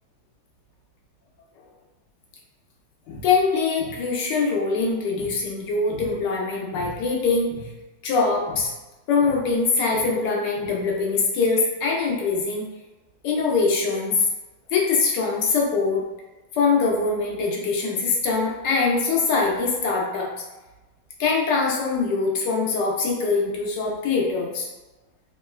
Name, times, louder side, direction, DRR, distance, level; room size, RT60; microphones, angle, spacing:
voice 1, 3.1-7.7 8.0-8.7 9.1-12.7 13.2-14.3 14.7-16.0 16.5-20.3 21.2-24.7, left 4 dB, 70° left, -2 dB, 1.1 m, -23 dB
3.7 x 2.1 x 2.2 m, 1.1 s
omnidirectional pair, 2.2 m